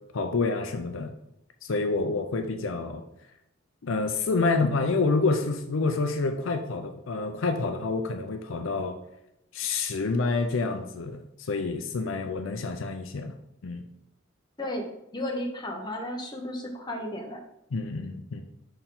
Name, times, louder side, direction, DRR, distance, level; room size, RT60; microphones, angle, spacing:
voice 1, 0.1-1.1 1.6-3.0 3.8-9.0 9.5-13.4 13.6-13.8 17.7-18.4, left 3 dB, 70° left, 5 dB, 0.5 m, -28 dB
voice 2, 15.1-17.4, left 1 dB, 20° left, 1 dB, 1.0 m, -33 dB
5.6 x 4.4 x 3.8 m, 0.82 s
head